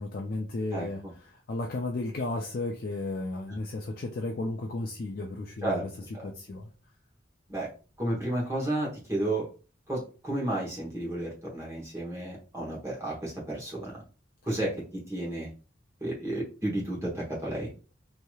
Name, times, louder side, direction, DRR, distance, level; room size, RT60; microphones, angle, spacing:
voice 1, 0.0-5.9 6.2-6.7, left 2 dB, 50° left, 1 dB, 0.4 m, -34 dB
voice 2, 8.0-9.5 9.9-14.0 14.5-14.7 15.1-15.5 16.0-17.7, right 1 dB, 15° right, -4 dB, 1.0 m, -32 dB
3.1 x 2.7 x 2.2 m, 0.35 s
head